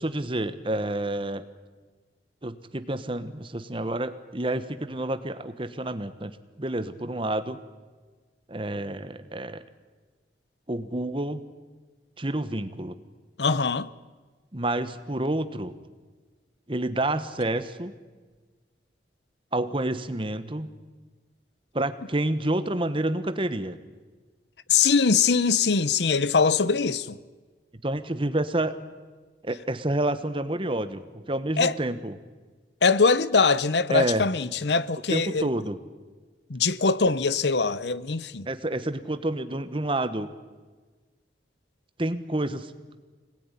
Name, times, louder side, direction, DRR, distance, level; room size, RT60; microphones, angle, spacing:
voice 1, 0.0-1.4 2.4-7.6 8.5-9.6 10.7-11.4 12.2-13.0 14.5-15.7 16.7-17.9 19.5-20.8 21.7-23.8 27.8-28.8 29.4-32.2 33.9-34.3 35.1-35.8 38.5-40.3 42.0-42.7, right 1 dB, 30° right, 1.3 m, -29 dB
voice 2, 13.4-13.9 24.7-27.2 31.6-31.7 32.8-35.5 36.5-38.5, left 5 dB, 75° left, 0.8 m, -22 dB
26.0 x 20.0 x 9.9 m
head